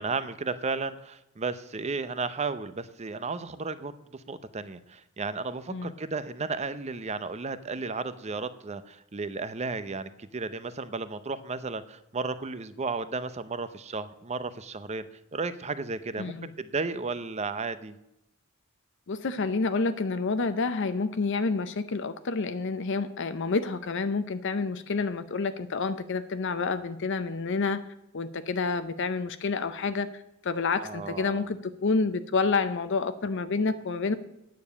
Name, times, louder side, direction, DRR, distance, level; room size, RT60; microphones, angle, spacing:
voice 1, 0.0-15.1 15.3-18.0 30.8-31.5, right 4 dB, 30° right, 13 dB, 0.6 m, -34 dB
voice 2, 16.2-16.5 19.1-27.8 28.1-34.2, left 4 dB, 60° left, 11 dB, 0.6 m, -29 dB
9.4 x 7.0 x 8.3 m, 0.89 s
head